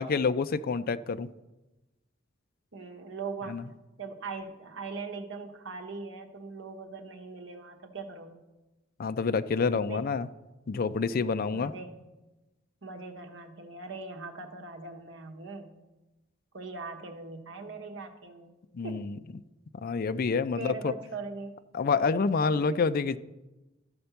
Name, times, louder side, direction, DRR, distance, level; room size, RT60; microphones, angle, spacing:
voice 1, 0.0-1.3 3.5-3.6 9.0-10.3 10.7-11.7 18.7-19.2 19.8-20.9 21.7-23.2, left 4 dB, 50° left, 13 dB, 0.4 m, -28 dB
voice 2, 2.7-3.7 4.0-8.4 9.9-10.0 11.5-12.0 12.8-15.8 16.5-18.5 18.8-19.1 20.6-21.6 22.5-22.8, right 3 dB, 70° right, 4 dB, 1.1 m, -40 dB
13.0 x 4.3 x 6.9 m, 1.1 s
head